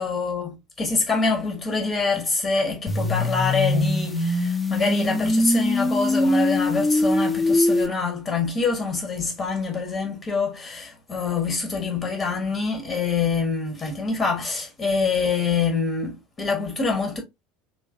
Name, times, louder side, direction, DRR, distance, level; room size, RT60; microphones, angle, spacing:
voice 1, 0.0-17.2, left 4 dB, 30° left, 1.1 m, -25 dB
sound 1, 2.9-7.9, left 1 dB, 15° left, 0.7 m, -22 dB
3.7 x 3.0 x 2.5 m
figure-of-eight pair, 70°, 0 cm